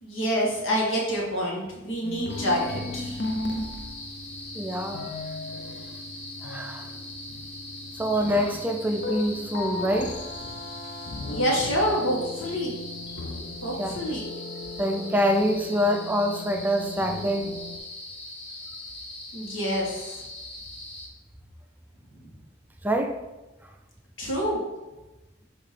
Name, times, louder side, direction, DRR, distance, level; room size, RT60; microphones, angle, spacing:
voice 1, 0.0-3.2 11.3-12.7 13.6-14.3 19.3-20.1 24.2-24.6, equal, 90° left, -2 dB, 1.6 m, -27 dB
sound 1, 2.0-17.8, left 2 dB, 60° left, 0.6 m, -37 dB
sound 2, 2.3-21.1, left 2 dB, 35° left, 1.1 m, -41 dB
voice 2, 4.5-5.0 6.4-6.9 8.0-10.2 13.8-14.0 14.8-17.6 22.8-23.2, equal, 10° right, 5 dB, 0.4 m, -25 dB
7.8 x 3.0 x 4.2 m, 1.1 s
head